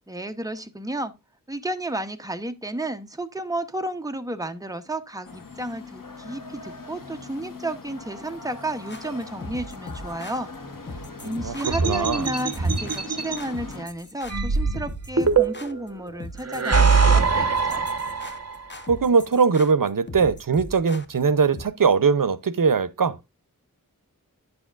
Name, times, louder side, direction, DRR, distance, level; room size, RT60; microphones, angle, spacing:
voice 1, 0.1-1.1 1.5-10.5 11.2-17.9, right 1 dB, 10° right, 0.9 m, -32 dB
sound 1, 5.2-13.8, left 3 dB, 70° left, 1.4 m, -40 dB
sound 2, 8.9-21.6, left 2 dB, 30° left, 1.0 m, -40 dB
voice 2, 11.2-11.5 11.8-12.3 18.9-23.2, right 5 dB, 70° right, 0.8 m, -21 dB
sound 3, 11.6-13.4 14.3-15.8 16.4-18.6, right 5 dB, 45° right, 1.2 m, -22 dB
10.0 x 6.9 x 2.5 m
wide cardioid pair, 55°, 34 cm